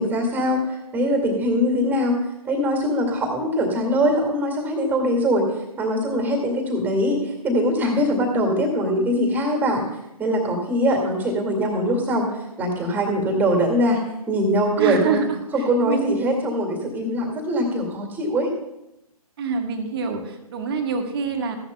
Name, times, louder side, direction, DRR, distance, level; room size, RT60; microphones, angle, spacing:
voice 1, 0.0-2.2 2.5-5.5 5.8-9.8 10.2-14.0 14.3-15.2 15.5-18.5, equal, 10° right, 2 dB, 2.2 m, -22 dB
voice 2, 14.8-15.3 15.6-16.1 19.4-21.6, right 5 dB, 40° right, 6 dB, 1.3 m, -26 dB
15.5 x 10.5 x 2.3 m, 0.87 s
figure-of-eight pair, 130°, 20 cm